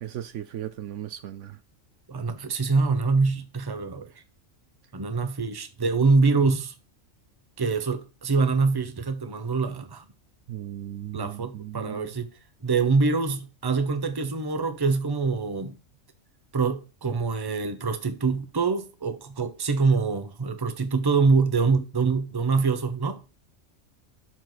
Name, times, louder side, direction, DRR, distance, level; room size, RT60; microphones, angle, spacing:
voice 1, 0.0-1.6 10.5-12.1, right 12 dB, 70° right, 0.9 m, -36 dB
voice 2, 2.1-4.1 4.9-6.7 7.6-10.0 11.1-12.3 12.6-15.7 16.5-23.2, right 4 dB, 20° right, 0.8 m, -24 dB
12.0 x 4.6 x 4.0 m
omnidirectional pair, 1.4 m